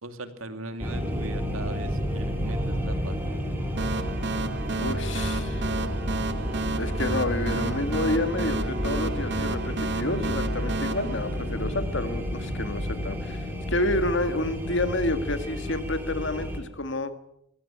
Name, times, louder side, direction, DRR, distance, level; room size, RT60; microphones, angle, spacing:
voice 1, 0.0-3.2, right 2 dB, 80° right, 9 dB, 2.6 m, -39 dB
sound 1, 0.8-16.6, equal, 10° right, 4.4 m, -31 dB
sound 2, 3.8-12.1, right 3 dB, 55° right, 1.2 m, -32 dB
voice 2, 4.8-5.7 6.8-13.4 13.7-17.1, left 2 dB, 55° left, 10 dB, 1.9 m, -29 dB
24.0 x 16.0 x 8.7 m, 0.79 s
head